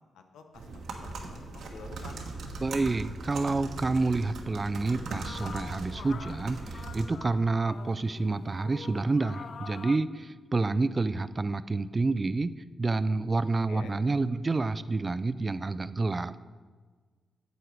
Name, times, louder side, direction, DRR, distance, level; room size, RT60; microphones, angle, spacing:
voice 1, 0.1-2.2 13.7-14.0, left 5 dB, 90° left, 6 dB, 0.9 m, -49 dB
sound 1, 0.5-7.1, right 3 dB, 80° right, 1.2 m, -39 dB
voice 2, 2.6-12.5 12.8-16.3, right 3 dB, 35° right, 14 dB, 0.4 m, -28 dB
sound 2, 4.9-10.0, left 6 dB, 65° left, 0.4 m, -46 dB
8.2 x 7.7 x 4.7 m, 1.5 s
cardioid pair, 65°, 0 cm